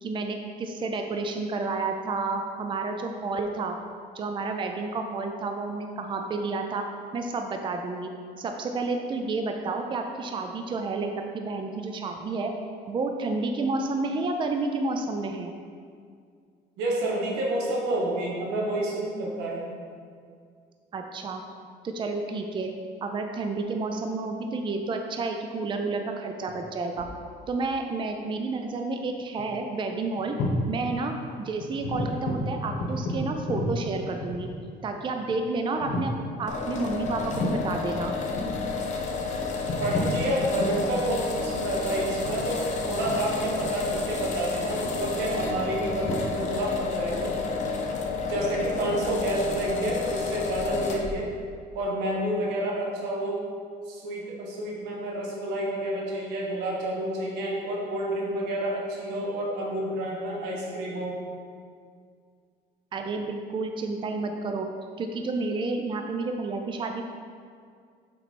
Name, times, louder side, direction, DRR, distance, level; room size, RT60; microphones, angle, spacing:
voice 1, 0.0-3.8 4.1-6.8 7.1-8.1 8.4-12.5 12.9-15.5 20.9-21.4 21.8-22.7 23.0-27.1 27.5-30.4 30.7-34.5 34.8-36.1 36.4-38.2 62.9-64.7 65.0-67.0, right 3 dB, 30° right, 4 dB, 0.4 m, -30 dB
voice 2, 16.8-19.6 39.7-47.3 48.2-51.2 51.7-53.4 53.9-61.2, right 1 dB, 90° right, -2 dB, 1.3 m, -29 dB
sound 1, 26.5-27.3 29.1-29.2 29.4-29.6 30.2-30.7 31.1-31.2 31.6-34.8 35.3-35.4 35.8-36.2 37.0-37.7 38.1-38.7 39.4-40.2 40.5-40.8 41.4-44.4 44.8-46.1, left 1 dB, 70° left, 1.3 m, -32 dB
sound 2, 36.5-51.1, left 4 dB, 45° left, 0.9 m, -30 dB
5.9 x 4.5 x 4.2 m, 2.2 s
cardioid pair, 110°, 17 cm